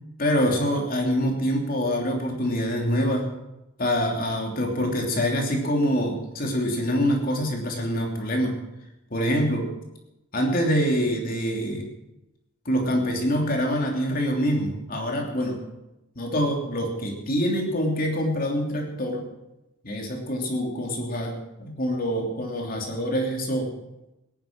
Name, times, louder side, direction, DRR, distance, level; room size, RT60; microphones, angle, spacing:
voice 1, 0.2-3.3 3.8-8.6 9.1-9.7 10.3-11.9 12.6-15.6 16.1-19.2 19.8-23.7, equal, 40° left, 1 dB, 3.1 m, -25 dB
18.0 x 11.0 x 6.1 m, 0.94 s
head